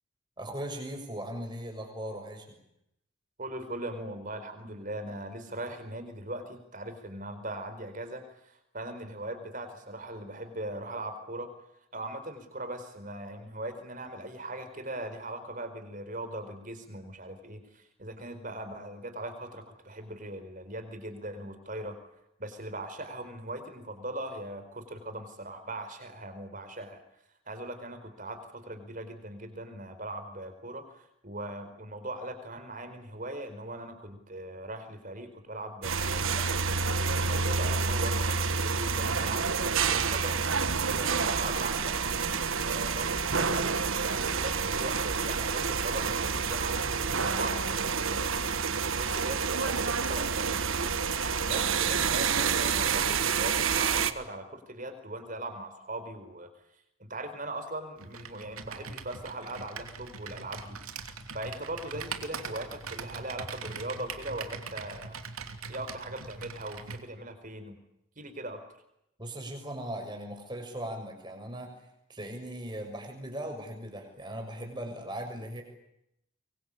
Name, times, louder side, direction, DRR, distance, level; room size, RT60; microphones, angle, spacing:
voice 1, 0.4-2.6 69.2-75.6, right 1 dB, 20° right, 3 dB, 6.6 m, -39 dB
voice 2, 3.4-11.5 11.9-22.0 22.4-27.0 27.5-36.6 37.2-38.3 38.6-40.4 40.9-42.1 42.6-48.2 48.9-51.0 51.4-56.5 57.0-60.8 61.3-65.2 65.7-67.8 68.2-68.6, right 1 dB, 40° right, 9 dB, 4.6 m, -40 dB
sound 1, 35.8-54.1, right 5 dB, 70° right, 1.4 m, -28 dB
Computer keyboard, 58.0-67.0, right 5 dB, 85° right, 2.9 m, -41 dB
24.0 x 24.0 x 8.6 m, 0.80 s
head